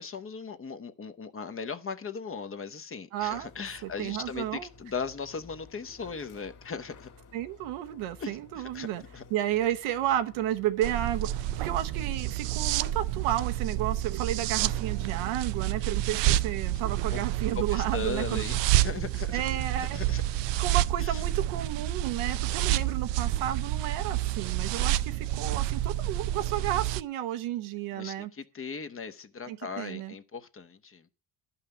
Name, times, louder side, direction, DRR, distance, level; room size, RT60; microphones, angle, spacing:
voice 1, 0.0-7.1 8.2-8.9 9.1-9.2 17.1-17.2 17.5-19.4 19.8-20.2 21.0-21.2 27.9-31.0, left 5 dB, 25° left, 0.9 m, -38 dB
voice 2, 3.1-3.5 3.8-4.7 7.3-9.0 9.3-18.4 19.3-20.0 20.6-28.3 29.5-30.1, right 12 dB, 80° right, 1.1 m, -32 dB
sound 1, 3.2-12.5, left 4 dB, 50° left, 2.1 m, -54 dB
sound 2, 10.8-27.0, right 14 dB, 60° right, 0.6 m, -29 dB
11.5 x 5.7 x 6.8 m
supercardioid pair, 90°, 49 cm